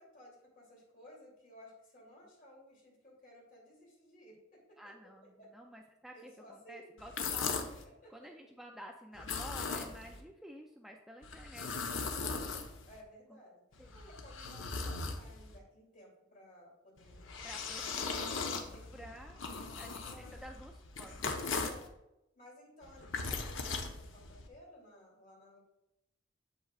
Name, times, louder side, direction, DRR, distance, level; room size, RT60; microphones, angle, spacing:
voice 1, 0.0-4.9 5.4-5.5 6.1-6.9 8.0-8.1 12.9-13.6 13.9-18.2 18.7-20.4 21.6-21.9 22.3-25.6, equal, 45° left, -3 dB, 2.8 m, -57 dB
voice 2, 4.8-7.7 8.1-12.7 13.8-14.0 17.4-18.2 18.9-21.3, equal, ahead, 2 dB, 0.4 m, -52 dB
sound 1, 7.0-7.8 9.1-10.2 11.2-13.0 13.7-15.6 17.0-21.9 22.8-24.5, left 4 dB, 75° left, 0.9 m, -39 dB
8.1 x 7.5 x 2.4 m, 0.87 s
head